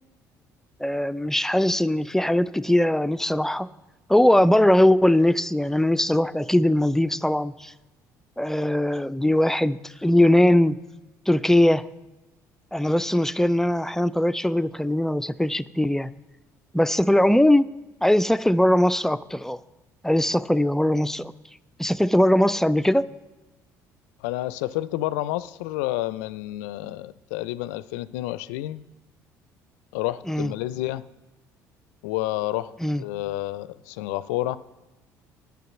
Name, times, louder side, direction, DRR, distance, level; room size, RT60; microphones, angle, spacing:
voice 1, 0.8-3.7 4.1-7.7 8.4-10.8 11.3-11.9 12.7-16.1 16.7-17.7 18.0-19.6 20.0-21.3 21.8-23.1 30.3-30.5 32.8-33.0, left 1 dB, 5° left, 16 dB, 0.4 m, -20 dB
voice 2, 24.2-28.8 29.9-31.0 32.0-34.6, left 16 dB, 75° left, 17 dB, 0.4 m, -29 dB
9.3 x 7.0 x 7.2 m, 1.1 s
hypercardioid pair, 60°, 9 cm